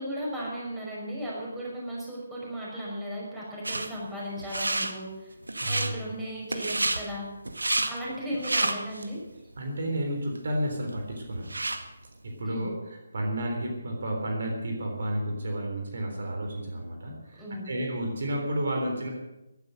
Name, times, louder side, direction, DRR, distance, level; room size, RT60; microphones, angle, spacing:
voice 1, 0.0-5.3 5.7-7.3 7.9-9.2 12.4-12.7 17.4-17.7, equal, 10° right, -5 dB, 5.9 m, -36 dB
sound 1, 3.6-3.9 4.4-4.9 5.4-5.9 6.5-7.0 7.4-7.9 8.3-9.1 9.6-9.7 10.3-10.4 10.7-11.8, right 2 dB, 80° right, 1.9 m, -29 dB
voice 2, 5.6-5.9 9.6-11.6 12.2-19.1, right 1 dB, 55° right, 2 dB, 3.6 m, -31 dB
14.5 x 12.0 x 6.7 m, 0.95 s
figure-of-eight pair, 150°, 0 cm